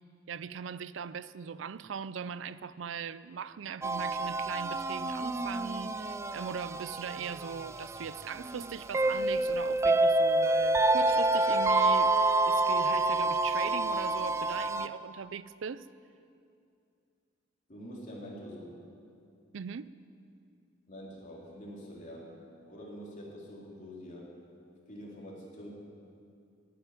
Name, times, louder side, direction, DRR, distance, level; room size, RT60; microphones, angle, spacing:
voice 1, 0.3-12.2 12.5-15.9 19.5-19.9, right 6 dB, 75° right, 0.4 m, -40 dB
sound 1, 3.8-14.9, right 2 dB, 15° right, 0.4 m, -28 dB
voice 2, 17.7-18.7 20.9-22.3 22.7-24.3 24.9-25.7, equal, 40° left, 3.4 m, -45 dB
12.0 x 10.5 x 9.6 m
head